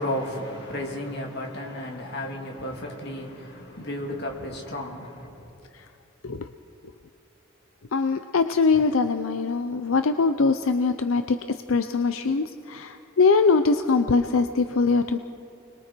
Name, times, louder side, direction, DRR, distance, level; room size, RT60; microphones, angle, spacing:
voice 1, 0.0-5.4, left 1 dB, 55° left, 2.9 m, -33 dB
voice 2, 7.9-11.4 11.7-15.2, left 4 dB, 80° left, 0.6 m, -22 dB
29.5 x 21.5 x 4.6 m
head